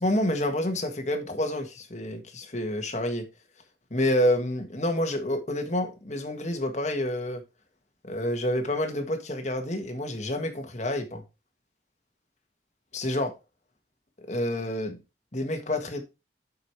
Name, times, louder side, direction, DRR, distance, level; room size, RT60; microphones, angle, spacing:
voice 1, 0.0-3.3 3.9-7.4 8.0-11.2 12.9-13.3 14.2-15.0 15.3-16.0, left 1 dB, 40° left, 1.6 m, -28 dB
8.1 x 4.8 x 4.7 m
head